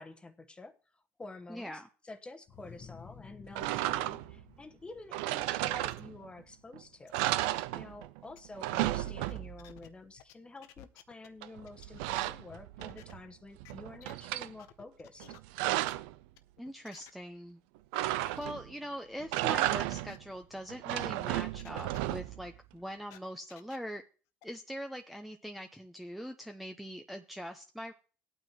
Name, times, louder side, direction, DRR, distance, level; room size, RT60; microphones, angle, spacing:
voice 1, 0.0-7.2 7.7-15.4, left 2 dB, 20° left, 1.1 m, -49 dB
voice 2, 1.5-1.9 16.6-17.6 18.4-24.0 24.4-27.9, equal, ahead, 0.7 m, -42 dB
sound 1, 2.5-8.0, left 6 dB, 45° left, 1.0 m, -56 dB
sound 2, 3.5-4.4 5.1-6.4 6.7-6.8 7.1-8.2 8.4-9.7 11.4-13.2 13.6-14.5 15.2-16.1 17.9-18.7 19.2-20.2 20.7-22.5, right 16 dB, 90° right, 0.4 m, -33 dB
sound 3, 5.9-6.0 6.5-6.6 7.1-7.4 8.4-8.5 8.7-9.9 10.2-10.3 10.6-11.3 11.7-12.1 12.5-13.1 13.7-13.8 14.0-14.1 14.6-15.4 15.8-16.0 16.4-17.1 17.9-18.5 18.8-18.9 19.4-19.7 20.1-20.2 20.9-21.0 21.4-21.7 21.9-22.0 22.5-23.8 24.4-24.5, left 13 dB, 80° left, 0.7 m, -55 dB
16.5 x 8.9 x 3.0 m
supercardioid pair, 90°, 5 cm